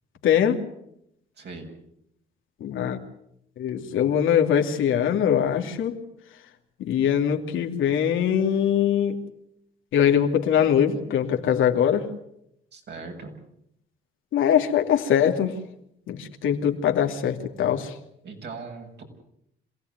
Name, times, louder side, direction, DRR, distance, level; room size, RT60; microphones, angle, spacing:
voice 1, 0.2-0.6 2.6-3.0 3.6-6.0 6.8-9.1 9.9-12.1 14.3-15.6 16.1-17.9, left 9 dB, 80° left, 4 dB, 2.8 m, -22 dB
voice 2, 1.4-1.7 12.7-13.3 18.2-19.0, right 4 dB, 60° right, 2 dB, 7.5 m, -39 dB
27.0 x 17.0 x 9.5 m, 0.77 s
cardioid pair, 90°, 20 cm